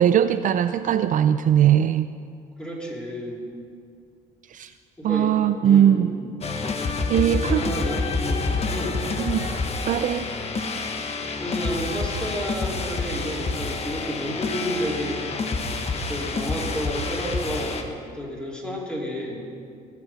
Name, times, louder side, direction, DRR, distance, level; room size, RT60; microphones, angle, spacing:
voice 1, 0.0-2.1 4.5-4.7 5.0-6.1 7.1-7.6 9.2-9.5 9.9-10.3, right 10 dB, 50° right, 11 dB, 0.4 m, -20 dB
voice 2, 2.6-3.4 5.0-5.3 5.6-6.0 7.1-9.0 11.4-15.5 15.9-19.4, equal, 5° left, -4 dB, 3.6 m, -31 dB
sound 1, 6.4-17.8, left 3 dB, 40° left, 1.3 m, -28 dB
20.5 x 8.3 x 5.9 m, 2.3 s
cardioid pair, 110°, 17 cm